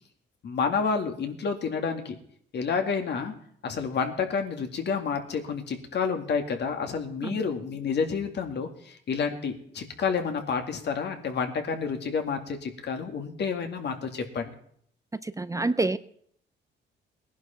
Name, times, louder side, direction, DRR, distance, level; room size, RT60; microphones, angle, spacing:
voice 1, 0.4-2.2 2.5-3.3 3.6-14.5, left 5 dB, 60° left, 5 dB, 2.3 m, -29 dB
voice 2, 15.2-16.0, right 2 dB, 15° right, 12 dB, 0.6 m, -27 dB
19.0 x 11.0 x 4.4 m, 0.65 s
cardioid pair, 90°, 20 cm